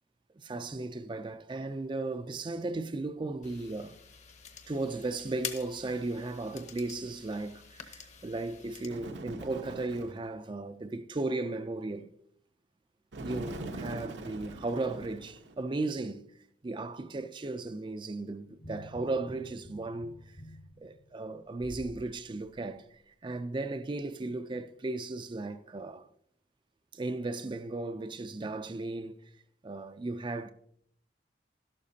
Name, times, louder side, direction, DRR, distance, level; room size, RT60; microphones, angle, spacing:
voice 1, 0.4-4.0 4.7-12.1 13.2-16.2 16.6-20.2 20.8-26.1 26.9-29.2 29.6-30.5, right 2 dB, 25° right, 0.4 m, -36 dB
sound 1, 3.4-8.9, left 7 dB, 40° left, 0.9 m, -46 dB
Bird, 8.9-10.3 13.1-15.6, right 2 dB, 85° right, 1.0 m, -42 dB
sound 2, 18.6-22.0 22.5-22.6, equal, 70° left, 1.6 m, -49 dB
12.5 x 11.5 x 2.8 m
head